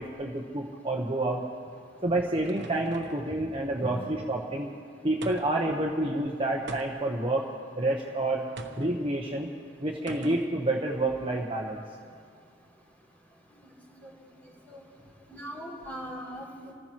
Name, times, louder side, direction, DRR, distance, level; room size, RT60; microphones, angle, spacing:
voice 1, 0.0-1.4 2.0-4.7 5.0-7.5 7.8-8.4 8.8-9.5 9.8-11.8, right 2 dB, 30° right, -1 dB, 1.0 m, -29 dB
sound 1, 1.8-3.3 5.2-5.7 6.7-7.2 8.6-8.9 10.1-10.5, right 2 dB, 65° right, 1.0 m, -42 dB
voice 2, 15.3-16.7, right 1 dB, 10° left, -3 dB, 3.0 m, -39 dB
28.0 x 14.5 x 3.0 m, 2.1 s
head